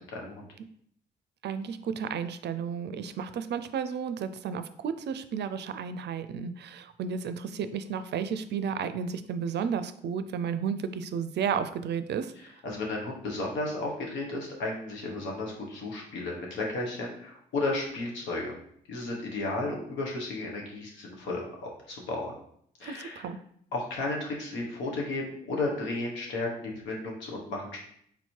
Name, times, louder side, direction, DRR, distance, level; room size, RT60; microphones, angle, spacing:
voice 1, 0.1-0.5 12.6-18.5 18.9-22.3 22.8-23.3 23.7-27.8, left 2 dB, 85° left, -1 dB, 1.1 m, -33 dB
voice 2, 1.4-12.3 22.8-23.4, right 7 dB, 65° right, 11 dB, 0.4 m, -32 dB
4.1 x 2.8 x 4.5 m, 0.66 s
supercardioid pair, 50°, 19 cm